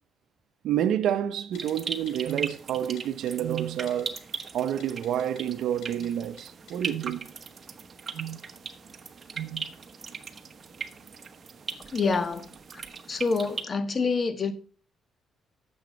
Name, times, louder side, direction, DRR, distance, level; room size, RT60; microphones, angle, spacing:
voice 1, 0.6-4.2 4.5-7.3 8.1-8.4 9.4-9.7, right 10 dB, 80° right, 0.6 m, -29 dB
Typing, 1.5-1.7 2.1-2.5 3.0-3.3 3.9-4.4 4.8-5.4 5.8-6.1 6.4-6.5 6.7-6.8, left 6 dB, 80° left, 5.9 m, -49 dB
sound 1, 1.5-13.6, right 5 dB, 40° right, 1.1 m, -39 dB
voice 2, 11.9-14.5, left 4 dB, 40° left, 1.3 m, -27 dB
9.7 x 7.2 x 5.1 m
cardioid pair, 90°, 0 cm